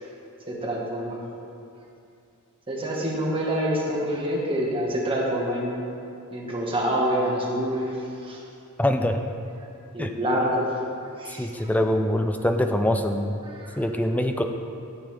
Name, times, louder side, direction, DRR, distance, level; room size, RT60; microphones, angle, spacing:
voice 1, 0.5-1.2 2.7-5.8 6.3-7.9 8.2-8.4 9.9-10.6 11.2-11.5 13.5-13.8, equal, 25° right, -3 dB, 1.6 m, -26 dB
voice 2, 8.8-9.2 10.0-10.1 11.4-13.4 13.8-14.4, left 1 dB, 5° left, 5 dB, 0.5 m, -24 dB
13.0 x 8.0 x 3.4 m, 2.6 s
head